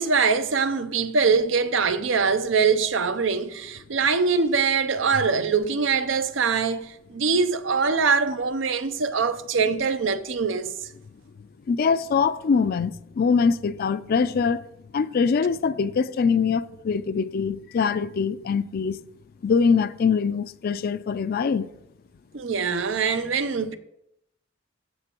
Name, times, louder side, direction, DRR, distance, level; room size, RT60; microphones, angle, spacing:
voice 1, 0.0-10.7 22.3-23.8, right 5 dB, 85° right, 0.6 m, -23 dB
voice 2, 11.7-14.6 14.9-19.0 19.4-21.7, left 5 dB, 50° left, 0.4 m, -23 dB
14.0 x 6.9 x 3.0 m
head